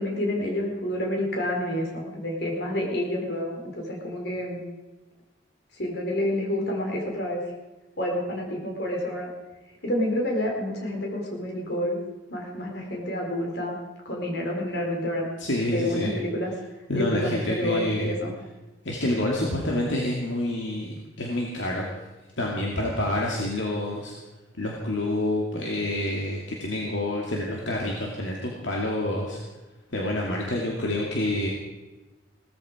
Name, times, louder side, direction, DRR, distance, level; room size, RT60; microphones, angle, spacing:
voice 1, 0.0-4.6 5.8-7.4 8.0-9.3 9.8-12.0 12.3-13.8 14.0-15.3 15.7-16.5 16.9-18.3, left 1 dB, 55° left, 0 dB, 4.2 m, -28 dB
voice 2, 15.4-16.1 16.9-18.1 18.8-21.9 22.4-24.1 24.6-29.4 29.9-31.5, left 1 dB, 75° left, -2 dB, 2.5 m, -28 dB
18.0 x 14.0 x 5.0 m, 1.1 s
head